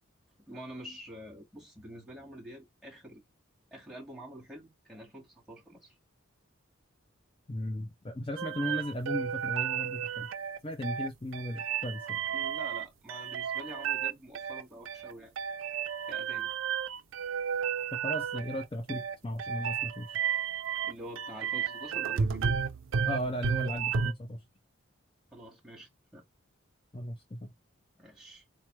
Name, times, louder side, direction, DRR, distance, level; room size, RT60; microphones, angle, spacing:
voice 1, 0.5-3.2 3.7-5.9 12.3-15.3 16.1-16.5 20.8-22.6 25.3-26.2 28.0-28.4, equal, 5° right, 2.0 m, -47 dB
voice 2, 7.5-10.3 10.6-12.2 17.9-20.2 23.1-24.4 26.9-27.5, equal, 25° left, 0.5 m, -36 dB
sound 1, 8.4-24.1, right 7 dB, 75° right, 0.4 m, -33 dB
4.2 x 3.1 x 3.1 m
head